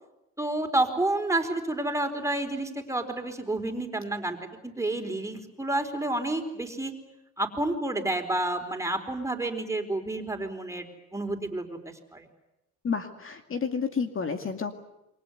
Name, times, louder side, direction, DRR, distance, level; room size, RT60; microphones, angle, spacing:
voice 1, 0.4-4.4 4.6-6.9 7.4-10.8 11.1-12.3, right 2 dB, 10° right, 5 dB, 4.4 m, -29 dB
voice 2, 12.8-14.7, left 5 dB, 45° left, 5 dB, 2.3 m, -30 dB
28.5 x 23.5 x 8.2 m, 0.89 s
cardioid pair, 90°, 30 cm